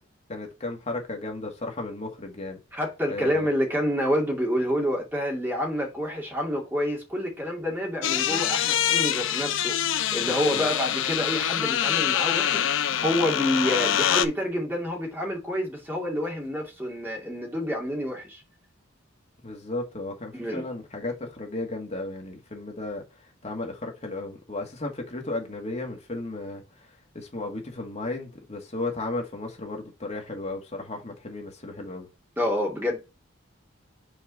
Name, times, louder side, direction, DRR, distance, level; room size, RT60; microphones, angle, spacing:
voice 1, 0.3-2.6 3.1-3.5 10.3-10.7 19.4-32.1, left 2 dB, 35° left, 1.8 m, -34 dB
voice 2, 2.7-18.4 20.3-20.6 32.4-33.0, equal, 10° right, 2.4 m, -28 dB
sound 1, 8.0-14.2, left 10 dB, 65° left, 0.5 m, -25 dB
5.6 x 4.5 x 4.0 m
head